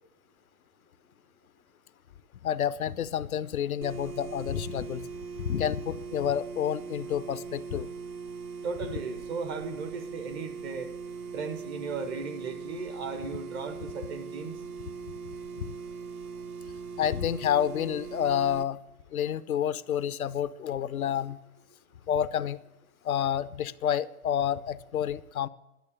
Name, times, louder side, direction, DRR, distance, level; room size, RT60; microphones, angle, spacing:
voice 1, 2.4-5.0 5.4-7.9 15.6-15.7 17.0-18.8 19.1-21.4 22.1-22.6 23.0-25.5, left 9 dB, 75° left, 17 dB, 0.6 m, -29 dB
sound 1, 3.8-18.6, right 5 dB, 80° right, 0.8 m, -40 dB
voice 2, 8.6-10.9 11.3-14.6, right 4 dB, 15° right, 8 dB, 0.5 m, -36 dB
11.5 x 6.5 x 6.6 m, 0.95 s
figure-of-eight pair, 110°, 43 cm